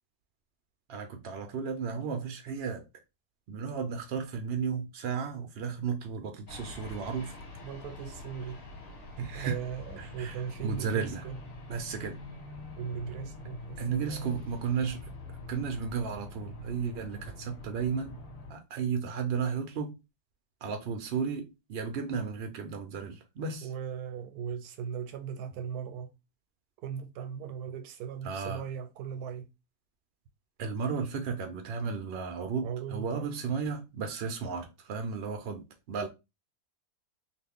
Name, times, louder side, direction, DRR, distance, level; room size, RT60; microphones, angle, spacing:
voice 1, 0.9-2.8 3.5-7.3 9.2-9.6 10.0-11.2 11.7-12.2 13.8-15.1 15.5-18.2 18.5-20.0 20.6-23.7 28.2-28.7 30.6-36.1, right 6 dB, 65° right, 0.6 m, -34 dB
sound 1, 6.5-18.5, left 2 dB, 45° left, 1.2 m, -45 dB
voice 2, 7.6-8.6 9.3-11.4 12.8-14.4 23.6-26.1 26.8-29.5 32.6-33.3, right 7 dB, 85° right, 1.1 m, -38 dB
3.0 x 2.4 x 3.4 m
omnidirectional pair, 1.6 m